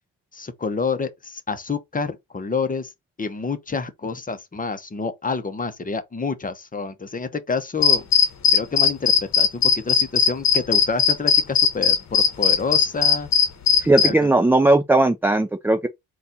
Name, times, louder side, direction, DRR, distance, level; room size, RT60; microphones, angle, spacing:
voice 1, 0.3-2.9 3.2-8.1 8.5-13.3 14.0-14.3, left 4 dB, 20° left, 0.7 m, -28 dB
sound 1, 7.8-14.1, left 7 dB, 40° left, 1.0 m, -17 dB
voice 2, 13.8-15.9, right 2 dB, 5° right, 0.3 m, -18 dB
4.1 x 2.4 x 4.0 m
cardioid pair, 95°, 41 cm